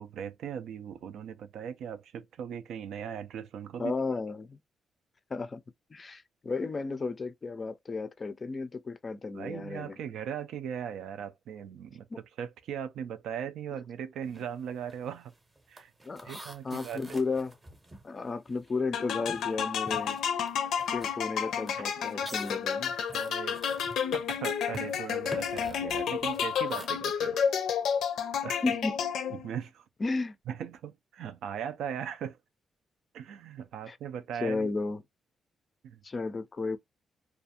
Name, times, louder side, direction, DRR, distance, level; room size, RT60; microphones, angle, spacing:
voice 1, 0.0-3.9 9.3-12.1 12.4-15.3 15.7-15.9 16.2-17.2 21.8-22.3 23.1-23.6 24.1-27.4 28.4-28.6 29.3-29.8 30.5-32.4 33.1-34.7 35.8-36.0, right 8 dB, 90° right, 0.4 m, -39 dB
voice 2, 3.8-4.6 5.3-5.6 5.9-10.0 12.1-12.2 16.0-17.5 18.0-20.2 20.9-22.9 28.6-29.0 30.0-30.4 33.9-34.0 34.4-35.0 36.0-36.8, left 3 dB, 30° left, 0.4 m, -33 dB
sound 1, 14.2-14.5 14.8-18.9 19.2-26.9, right 2 dB, 15° right, 0.7 m, -49 dB
sound 2, 18.9-29.6, left 7 dB, 85° left, 0.5 m, -31 dB
2.5 x 2.3 x 2.7 m
cardioid pair, 140°, 0 cm